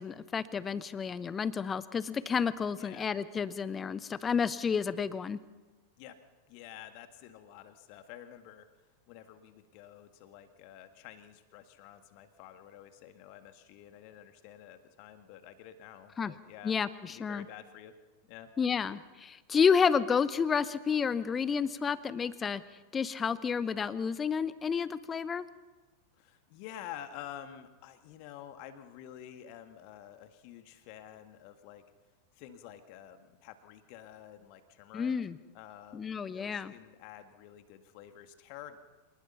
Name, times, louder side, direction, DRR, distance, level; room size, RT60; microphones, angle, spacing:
voice 1, 0.0-5.4 16.2-16.3 16.6-17.4 18.6-22.6 22.9-25.5 34.9-35.4 35.9-36.7, left 6 dB, 20° left, 17 dB, 0.9 m, -30 dB
voice 2, 2.7-3.1 6.0-6.2 6.5-8.7 9.1-16.8 17.1-17.9 18.3-18.5 26.2-31.8 32.3-35.1 35.5-38.8, left 11 dB, 45° left, 9 dB, 1.7 m, -49 dB
26.5 x 19.5 x 5.7 m, 1.2 s
figure-of-eight pair, 90°, 0 cm